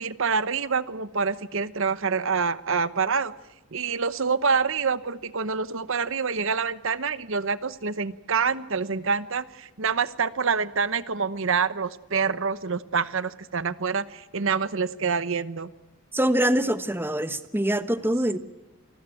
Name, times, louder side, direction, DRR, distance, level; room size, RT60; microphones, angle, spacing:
voice 1, 0.0-3.3 3.7-15.7, right 5 dB, 60° right, 15 dB, 1.0 m, -26 dB
voice 2, 16.1-18.4, right 1 dB, 10° right, 11 dB, 1.1 m, -24 dB
28.5 x 20.0 x 9.1 m, 1.0 s
head